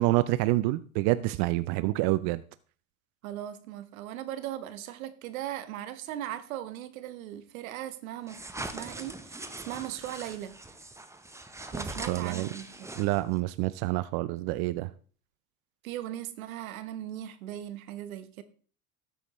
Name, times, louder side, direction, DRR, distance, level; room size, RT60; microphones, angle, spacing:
voice 1, 0.0-2.4 12.1-12.5 13.0-14.9, right 18 dB, 65° right, 0.6 m, -27 dB
voice 2, 1.7-2.3 3.2-10.5 11.7-12.9 15.8-18.4, right 12 dB, 90° right, 1.1 m, -39 dB
sound 1, 8.3-13.4, right 2 dB, 5° right, 0.9 m, -41 dB
12.5 x 8.4 x 3.1 m
supercardioid pair, 100°, 41 cm